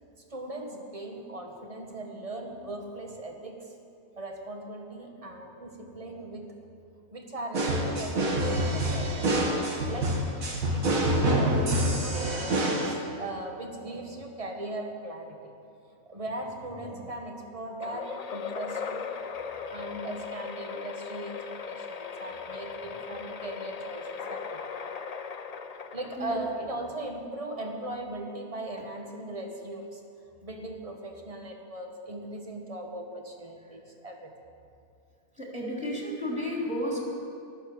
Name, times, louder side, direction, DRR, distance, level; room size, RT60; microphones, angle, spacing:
voice 1, 0.3-3.7 4.2-6.7 7.1-10.4 10.7-15.5 16.0-19.0 19.7-24.6 25.9-30.0 30.4-34.3, right 2 dB, 25° right, 2 dB, 1.6 m, -39 dB
sound 1, 7.5-12.9, right 1 dB, 70° right, 2.3 m, -26 dB
sound 2, 17.8-26.6, left 6 dB, 55° left, 0.4 m, -38 dB
voice 2, 35.4-37.0, left 1 dB, 5° right, -3 dB, 3.3 m, -32 dB
14.5 x 12.0 x 7.0 m, 2.5 s
omnidirectional pair, 1.5 m